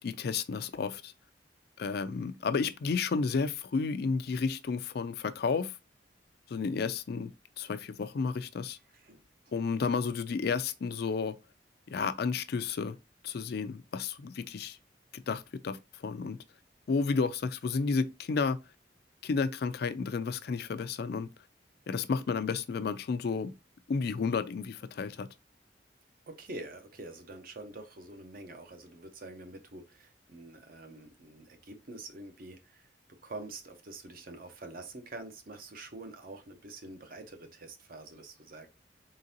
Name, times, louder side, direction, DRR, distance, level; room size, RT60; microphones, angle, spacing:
voice 1, 0.0-1.1 1.8-5.7 6.5-7.3 7.6-8.8 9.5-11.3 11.9-13.0 13.2-14.8 15.1-16.4 16.9-18.6 19.2-21.3 21.9-23.5 23.9-25.3, left 5 dB, 55° left, 0.4 m, -32 dB
voice 2, 8.9-9.2 26.3-32.9 33.2-38.7, right 2 dB, 50° right, 0.8 m, -46 dB
3.8 x 3.7 x 2.7 m
head